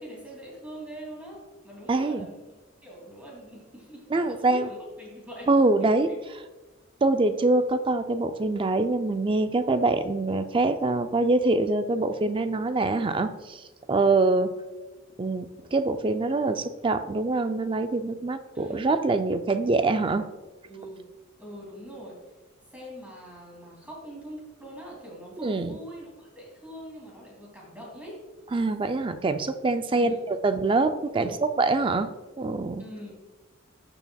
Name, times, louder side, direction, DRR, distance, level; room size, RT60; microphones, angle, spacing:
voice 1, 0.0-2.5 2.8-5.5 5.8-6.2 18.5-18.9 20.7-21.1 21.4-22.2 22.7-28.2 29.9-30.3 31.1-31.3 32.8-33.2, equal, 10° right, -4 dB, 2.7 m, -43 dB
voice 2, 1.9-2.3 4.1-4.7 5.5-6.1 7.0-13.6 13.9-14.5 15.2-20.2 25.4-25.8 28.5-31.3 31.6-32.1 32.4-32.8, right 3 dB, 25° right, 9 dB, 0.4 m, -24 dB
11.5 x 6.9 x 2.3 m, 1.2 s
head